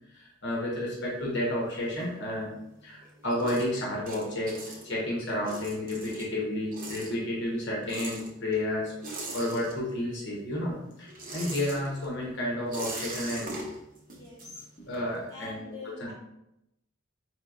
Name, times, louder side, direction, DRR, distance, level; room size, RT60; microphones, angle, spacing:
voice 1, 0.1-2.6 2.8-4.6 4.8-13.5 14.9-16.1, left 1 dB, 60° left, -3 dB, 1.0 m, -31 dB
sound 1, 1.0-2.7 3.0-10.2 10.5-15.2, right 2 dB, 45° right, 0.9 m, -42 dB
voice 2, 14.1-14.9 15.3-16.1, left 3 dB, 20° left, -7 dB, 1.3 m, -45 dB
4.7 x 3.5 x 2.5 m, 0.86 s
head